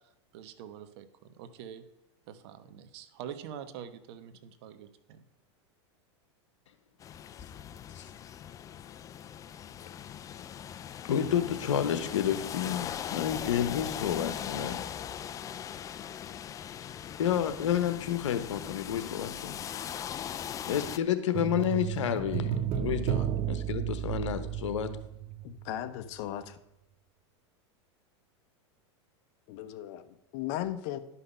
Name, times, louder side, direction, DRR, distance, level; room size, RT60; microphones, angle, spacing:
voice 1, 0.3-1.8 2.3-5.2, right 9 dB, 60° right, 11 dB, 1.1 m, -45 dB
sound 1, 7.0-21.0, left 9 dB, 20° left, 0.4 m, -40 dB
voice 2, 11.0-14.8 16.8-16.9 17.2-19.6 20.7-24.9, left 9 dB, 85° left, 10 dB, 1.1 m, -30 dB
sound 2, 21.3-25.8 26.1-26.2, right 10 dB, 40° right, 0.7 m, -33 dB
voice 3, 25.4-26.6 29.5-31.0, left 12 dB, 55° left, 10 dB, 1.0 m, -37 dB
11.5 x 5.7 x 5.6 m, 0.85 s
supercardioid pair, 125°, 15 cm